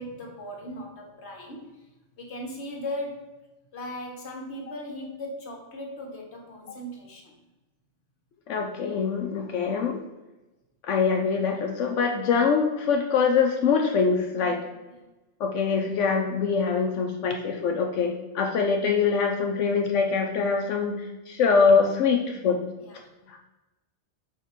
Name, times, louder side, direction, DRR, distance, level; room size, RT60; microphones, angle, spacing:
voice 1, 0.0-1.9 2.2-3.3 3.7-7.3 14.9-15.0 22.8-23.1, left 1 dB, 65° left, 0 dB, 1.5 m, -38 dB
voice 2, 8.5-10.0 10.8-14.6 15.4-22.6 23.3-23.4, left 5 dB, 85° left, 2 dB, 1.0 m, -24 dB
5.0 x 3.6 x 5.7 m, 1.1 s
omnidirectional pair, 1.2 m